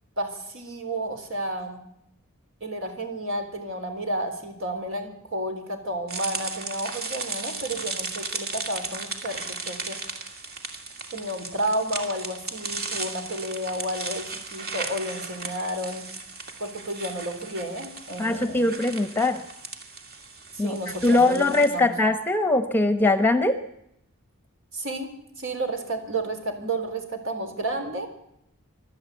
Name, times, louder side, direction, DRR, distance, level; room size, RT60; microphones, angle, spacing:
voice 1, 0.2-1.8 2.6-10.0 11.1-16.1 16.6-18.7 20.6-21.9 24.7-25.1 25.4-28.1, right 1 dB, 60° right, 6 dB, 3.8 m, -31 dB
sound 1, 6.1-21.7, right 3 dB, 45° right, 2.5 m, -36 dB
voice 2, 18.2-19.4 20.6-20.8 21.0-23.6, left 2 dB, 10° left, 9 dB, 1.0 m, -21 dB
26.5 x 12.5 x 8.3 m, 0.80 s
head